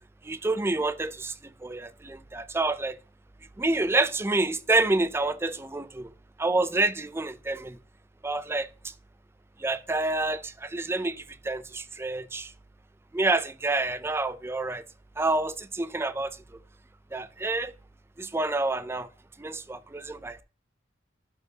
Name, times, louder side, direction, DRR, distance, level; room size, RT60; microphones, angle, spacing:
voice 1, 0.2-1.3 1.6-3.0 3.6-6.1 6.4-7.8 8.2-8.9 9.6-12.5 13.1-14.8 15.2-16.4 17.1-17.7 18.2-19.1 19.4-20.4, right 2 dB, 15° right, 0.4 m, -28 dB
12.0 x 5.4 x 2.7 m
head